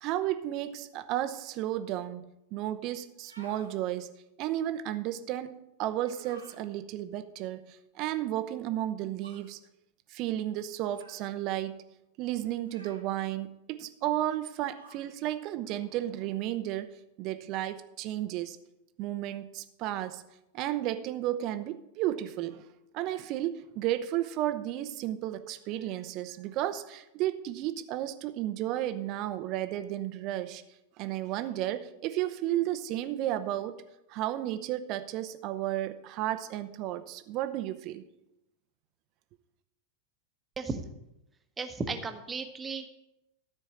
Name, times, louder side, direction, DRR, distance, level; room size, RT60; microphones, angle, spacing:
voice 1, 0.0-9.6 10.1-11.8 12.2-18.6 19.0-20.2 20.5-22.6 22.9-30.6 31.0-33.8 34.1-38.0, right 13 dB, 40° right, 0.7 m, -33 dB
sound 1, 3.1-3.7 6.0-6.6 9.2-9.5 10.9-11.3 12.6-13.1 14.7-15.1, right 2 dB, 85° right, 1.5 m, -52 dB
voice 2, 41.6-42.9, right 4 dB, 15° right, 1.1 m, -35 dB
13.5 x 4.5 x 7.6 m
figure-of-eight pair, 90°, 0 cm